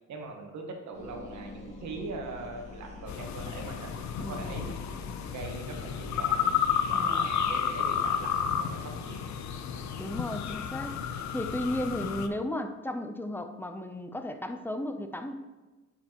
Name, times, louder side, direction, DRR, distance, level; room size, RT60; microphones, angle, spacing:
voice 1, 0.1-3.9 4.3-4.8 5.3-6.6 6.9-9.2, right 3 dB, 65° right, 2 dB, 1.3 m, -41 dB
sound 1, 0.9-6.7, left 2 dB, 20° left, 1.7 m, -46 dB
sound 2, 3.1-12.3, left 8 dB, 70° left, 0.6 m, -31 dB
voice 2, 4.2-4.5 6.9-7.3 10.0-11.0 11.3-15.4, left 1 dB, 5° left, 7 dB, 0.5 m, -34 dB
9.4 x 4.4 x 2.9 m, 1.2 s
cardioid pair, 90°, 30 cm